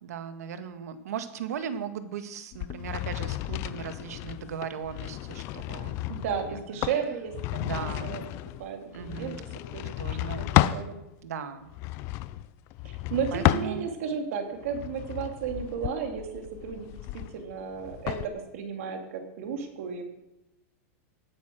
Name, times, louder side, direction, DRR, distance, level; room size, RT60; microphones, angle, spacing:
voice 1, 0.0-6.1 6.4-6.6 7.6-8.2 8.9-9.4 10.0-10.5 11.2-11.7 13.3-13.9, right 7 dB, 90° right, 9 dB, 1.7 m, -37 dB
sound 1, 2.5-10.9 11.7-14.1 14.6-18.3, left 16 dB, 30° left, 0.5 m, -32 dB
voice 2, 6.1-9.3 9.7-9.8 10.4-10.9 12.8-20.0, right 7 dB, 60° right, 4 dB, 3.0 m, -34 dB
18.0 x 9.5 x 6.4 m, 0.96 s
supercardioid pair, 165°, 8 cm